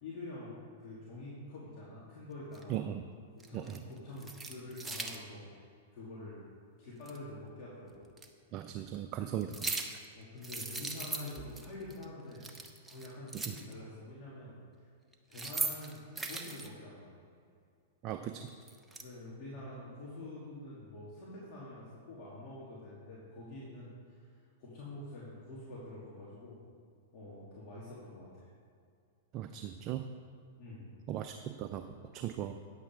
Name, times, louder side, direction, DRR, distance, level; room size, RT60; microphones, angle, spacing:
voice 1, 0.0-2.8 3.3-5.4 5.9-6.4 6.8-8.1 9.3-9.4 10.2-12.5 12.9-14.5 14.8-14.9 15.3-17.2 19.0-24.3 24.6-26.6 27.1-28.5 30.6-30.9, left 2 dB, 45° left, -8 dB, 2.7 m, -46 dB
sound 1, 2.5-2.6 3.4-3.8 4.2-5.2 7.1-7.2 8.2-8.3 9.4-10.1 10.4-11.7 11.9-12.0 12.3-13.7 15.1-16.7 18.3-19.0, right 3 dB, 10° right, 0.9 m, -39 dB
voice 2, 2.7-3.0 3.5-3.8 8.5-9.8 13.5-13.6 18.0-18.5 29.3-30.0 31.1-31.9 32.1-32.5, right 11 dB, 40° right, 7 dB, 0.5 m, -38 dB
9.7 x 8.1 x 4.6 m, 2.3 s
hypercardioid pair, 125°, 0 cm